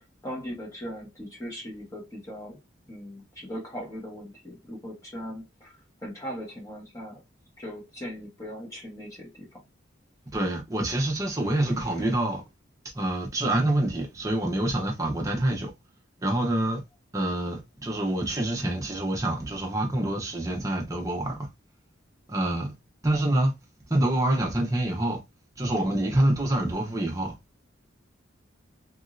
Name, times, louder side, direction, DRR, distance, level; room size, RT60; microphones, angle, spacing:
voice 1, 0.2-2.6 2.9-5.8 6.0-7.2 7.6-9.6 11.5-12.1, equal, 15° left, 1.0 m, -39 dB
voice 2, 10.3-12.4 12.9-15.7 16.2-16.8 17.1-21.3 22.3-22.7 23.0-23.5 23.9-25.2 25.6-27.3, right 1 dB, 15° right, 0.7 m, -26 dB
3.0 x 2.7 x 2.4 m
head